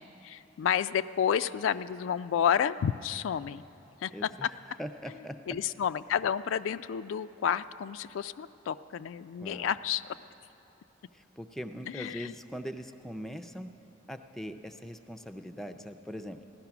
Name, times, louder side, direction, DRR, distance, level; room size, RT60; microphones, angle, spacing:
voice 1, 0.0-3.6 4.0-4.5 5.5-10.0 11.9-12.3, left 8 dB, 80° left, 13 dB, 0.3 m, -30 dB
voice 2, 4.1-4.5 4.8-5.4 9.4-9.7 11.1-13.7 14.1-16.4, equal, ahead, 7 dB, 0.4 m, -41 dB
16.0 x 11.5 x 5.9 m, 2.9 s
head